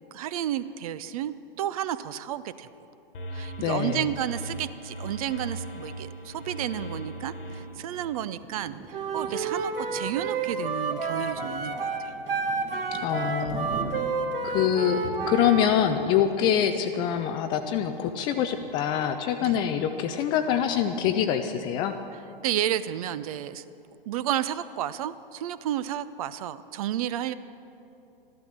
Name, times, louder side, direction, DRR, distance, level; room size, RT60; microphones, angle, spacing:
voice 1, 0.1-2.7 3.3-12.1 19.4-19.6 22.1-23.6 24.1-27.3, right 11 dB, 40° right, 15 dB, 0.5 m, -32 dB
sound 1, 3.1-8.3, right 1 dB, 65° left, 1.5 m, -38 dB
voice 2, 3.6-4.0 13.0-13.7 14.4-15.0 15.3-21.9, left 9 dB, 15° left, 8 dB, 0.3 m, -25 dB
Thunder, 5.7-20.1 20.5-20.7 21.0-21.6, right 3 dB, 20° right, 1.1 m, -44 dB
Wind instrument woodwind instrument, 8.9-15.7, right 4 dB, 75° right, 1.5 m, -30 dB
13.5 x 12.0 x 6.6 m, 2.8 s
hypercardioid pair, 120°, 29 cm